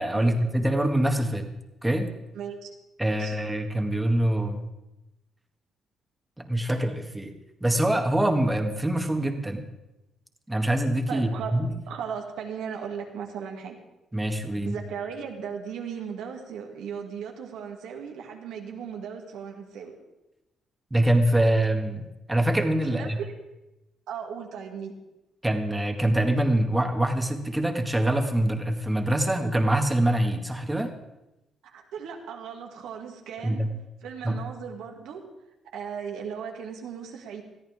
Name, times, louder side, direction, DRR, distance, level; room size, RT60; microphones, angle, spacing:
voice 1, 0.0-1.6 1.8-2.1 3.0-4.6 6.4-7.3 7.6-9.7 10.5-11.7 14.1-14.8 20.9-23.2 25.4-30.9 33.4-33.7 34.2-34.4, right 1 dB, 10° right, 4 dB, 2.0 m, -24 dB
voice 2, 2.3-2.7 3.2-3.3 11.1-11.6 11.9-13.8 14.6-20.0 22.9-23.3 24.1-24.9 31.6-33.7 34.0-35.2 35.7-37.4, right 7 dB, 85° right, 2 dB, 2.3 m, -37 dB
21.0 x 13.5 x 3.6 m, 0.95 s
cardioid pair, 90°, 0 cm